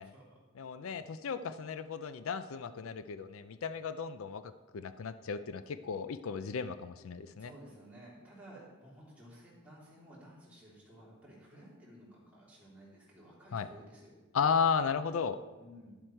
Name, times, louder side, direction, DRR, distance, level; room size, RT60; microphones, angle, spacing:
voice 1, 0.0-0.4 0.9-1.2 7.4-14.2 15.6-16.0, right 1 dB, 5° right, -7 dB, 2.9 m, -55 dB
voice 2, 0.6-7.5 13.5-13.7 14.3-15.4, left 6 dB, 80° left, 12 dB, 0.4 m, -34 dB
11.0 x 7.7 x 4.5 m, 1.2 s
head